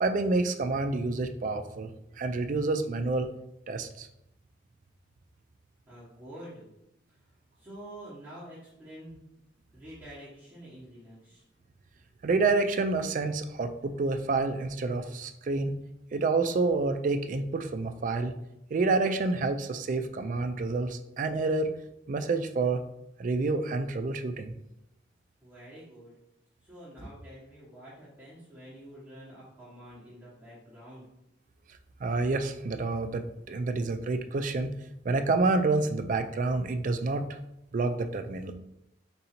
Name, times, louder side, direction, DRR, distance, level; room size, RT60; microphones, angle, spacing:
voice 1, 0.0-1.9 2.2-3.3 3.7-4.1 12.2-15.7 16.1-18.3 18.7-21.7 22.1-22.8 23.2-24.5 32.0-34.7 35.1-37.3 37.7-38.5, right 3 dB, 45° right, 8 dB, 0.3 m, -28 dB
voice 2, 5.9-6.7 7.6-9.2 9.7-11.4 25.4-26.1 26.6-31.1, right 1 dB, 10° right, -11 dB, 1.1 m, -47 dB
3.8 x 2.7 x 4.3 m, 0.83 s
head